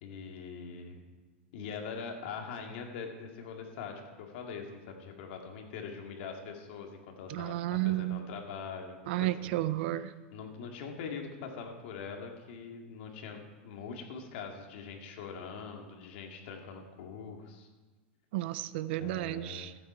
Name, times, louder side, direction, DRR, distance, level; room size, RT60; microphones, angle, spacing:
voice 1, 0.0-1.0 1.5-9.6 10.3-17.7 18.9-19.8, left 5 dB, 65° left, 2 dB, 2.3 m, -43 dB
voice 2, 7.3-8.2 9.1-10.1 18.3-19.7, right 16 dB, 65° right, 15 dB, 0.5 m, -32 dB
14.5 x 8.9 x 4.5 m, 1.3 s
supercardioid pair, 130°, 6 cm